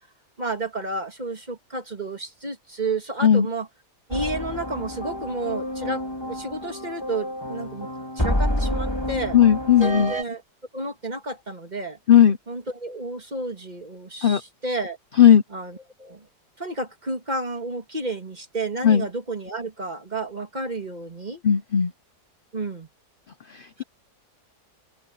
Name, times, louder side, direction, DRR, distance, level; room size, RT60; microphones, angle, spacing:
voice 1, 0.4-3.7 4.1-7.9 8.2-9.4 9.8-10.4 10.7-12.0 12.5-15.0 15.5-16.3 16.6-21.4 22.5-22.9 23.8-23.9, right 2 dB, 25° right, 2.4 m, -31 dB
sound 1, 4.1-10.2, equal, 15° left, 3.4 m, -28 dB
voice 2, 9.3-10.1 12.1-12.4 14.2-14.4 15.2-15.4 18.8-19.1 21.4-21.9 23.5-23.8, left 9 dB, 55° left, 0.5 m, -16 dB
open air
omnidirectional pair, 1.8 m